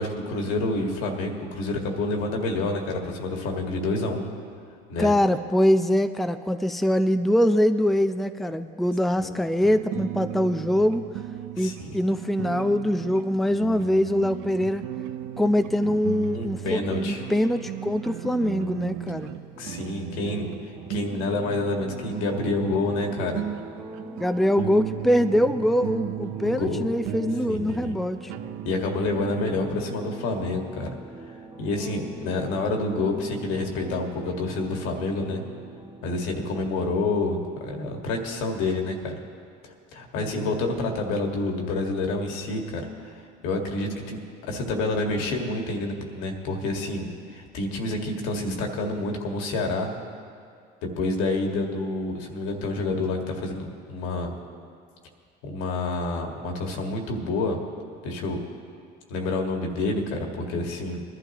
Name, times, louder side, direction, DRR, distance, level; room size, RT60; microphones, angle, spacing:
voice 1, 0.0-4.3 4.9-5.1 9.2-9.4 11.6-12.0 16.3-17.2 19.6-23.4 26.4-26.9 27.5-27.9 28.7-30.9 31.6-35.4 36.0-39.1 39.6-44.2 44.5-49.9 51.0-54.3 55.4-57.6 58.0-58.4 59.1-61.0, left 2 dB, 80° left, 2 dB, 1.8 m, -28 dB
voice 2, 5.0-11.0 11.6-14.8 15.4-19.4 24.2-28.3 40.2-40.5, equal, ahead, 9 dB, 0.5 m, -23 dB
sound 1, 9.6-29.5, right 12 dB, 85° right, 0.7 m, -36 dB
sound 2, 19.5-36.7, right 2 dB, 20° right, 1.7 m, -43 dB
21.0 x 11.5 x 3.0 m, 2.2 s
supercardioid pair, 80°, 21 cm